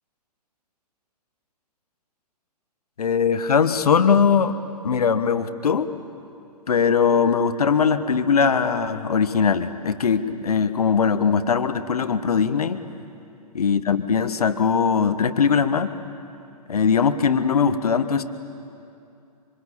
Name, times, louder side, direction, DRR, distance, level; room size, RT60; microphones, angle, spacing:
voice 1, 3.0-4.5 4.8-5.9 6.7-12.8 13.5-15.9 16.7-18.2, left 6 dB, 65° left, 10 dB, 1.4 m, -20 dB
25.5 x 25.0 x 8.8 m, 2.7 s
figure-of-eight pair, 120°, 21 cm